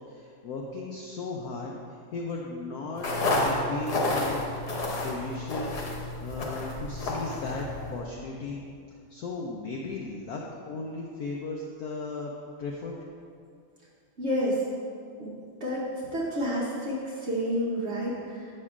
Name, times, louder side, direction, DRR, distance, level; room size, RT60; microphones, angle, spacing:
voice 1, 0.1-1.8 2.1-3.1 3.3-4.4 5.0-5.8 6.2-8.6 9.1-12.3 12.6-13.0, left 3 dB, 85° left, -1 dB, 0.8 m, -36 dB
sound 1, 3.0-8.0, left 2 dB, 60° left, 1.3 m, -30 dB
voice 2, 14.2-14.6 15.2-15.3 15.6-15.8 16.1-18.5, equal, 60° right, -5 dB, 0.7 m, -29 dB
7.6 x 6.4 x 2.4 m, 2.4 s
omnidirectional pair, 2.2 m